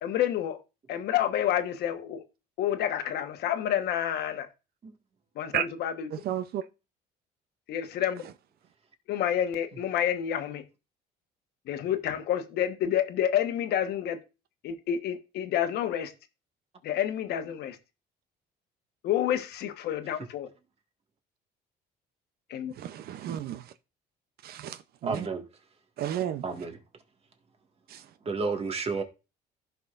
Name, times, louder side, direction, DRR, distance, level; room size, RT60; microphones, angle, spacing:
voice 1, 0.0-0.6 0.9-2.2 2.6-4.5 5.3-6.1 7.7-8.2 9.1-10.6 11.7-14.2 14.6-16.1 16.8-17.8 19.0-20.5 22.5-22.7, left 10 dB, 75° left, 1.2 m, -29 dB
voice 2, 6.1-6.6 22.8-23.7 24.4-25.3 26.0-26.4 27.9-28.1, right 11 dB, 65° right, 0.6 m, -33 dB
voice 3, 25.0-25.4 26.4-26.8 28.2-29.0, right 4 dB, 35° right, 1.8 m, -31 dB
15.5 x 5.7 x 2.5 m
cardioid pair, 110°, 17 cm